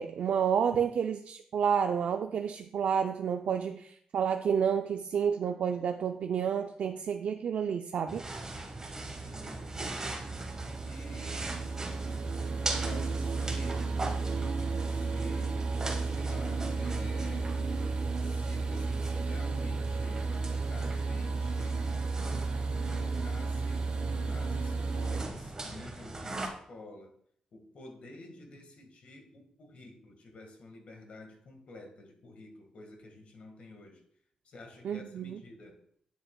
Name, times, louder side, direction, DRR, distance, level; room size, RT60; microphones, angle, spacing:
voice 1, 0.0-8.2 34.8-35.4, right 7 dB, 75° right, 7 dB, 0.4 m, -30 dB
sound 1, 8.1-26.5, right 2 dB, 25° right, 1.3 m, -41 dB
sound 2, 8.3-25.2, right 4 dB, 55° right, 0.8 m, -33 dB
voice 2, 9.2-10.3 10.8-11.4 12.6-13.9 14.9-15.6 16.0-17.5 18.2-20.3 20.7-23.9 24.2-27.1 27.5-34.0 34.4-35.8, left 2 dB, 65° left, 4 dB, 1.5 m, -50 dB
10.0 x 6.7 x 2.2 m, 0.66 s
cardioid pair, 95°, 2 cm